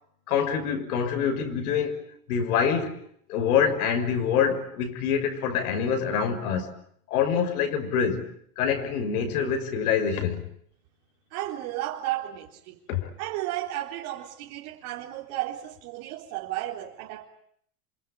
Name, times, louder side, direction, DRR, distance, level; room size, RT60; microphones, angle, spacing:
voice 1, 0.3-2.0 2.3-3.0 3.3-6.7 7.1-8.3 8.6-10.4 12.9-13.1, left 7 dB, 70° left, 6.4 m, -25 dB
voice 2, 11.3-12.8 13.2-17.2, right 14 dB, 55° right, 3.9 m, -33 dB
27.5 x 25.0 x 8.8 m
hypercardioid pair, 110°, 46 cm